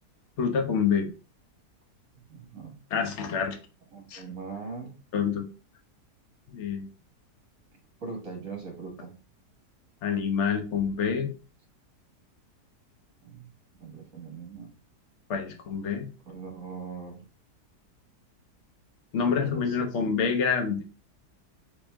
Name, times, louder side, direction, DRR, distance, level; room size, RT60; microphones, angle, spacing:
voice 1, 0.4-1.1 2.9-3.6 4.1-4.2 5.1-5.5 6.5-6.9 10.0-11.3 15.3-16.1 19.1-20.8, left 6 dB, 50° left, 4 dB, 1.0 m, -27 dB
voice 2, 2.3-2.8 3.9-5.0 8.0-9.1 13.2-13.5 13.8-14.7 16.3-17.2 19.2-19.9, right 4 dB, 55° right, 2 dB, 1.8 m, -40 dB
4.1 x 3.6 x 3.4 m, 0.34 s
omnidirectional pair, 1.7 m